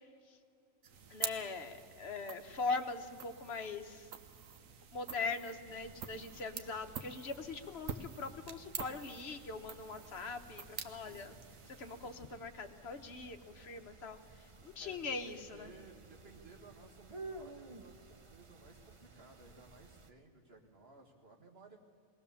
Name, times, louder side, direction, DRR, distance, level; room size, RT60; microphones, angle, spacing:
sound 1, 0.8-12.5, right 7 dB, 75° right, 1.3 m, -47 dB
voice 1, 1.1-4.1 4.9-11.3 11.7-15.7, left 4 dB, 55° left, 7 dB, 1.2 m, -41 dB
sound 2, 5.6-20.1, right 3 dB, 30° right, 0.6 m, -55 dB
voice 2, 10.7-11.4 14.8-21.8, right 3 dB, 45° right, 2 dB, 2.0 m, -58 dB
21.0 x 18.0 x 7.1 m, 2.4 s
omnidirectional pair, 1.4 m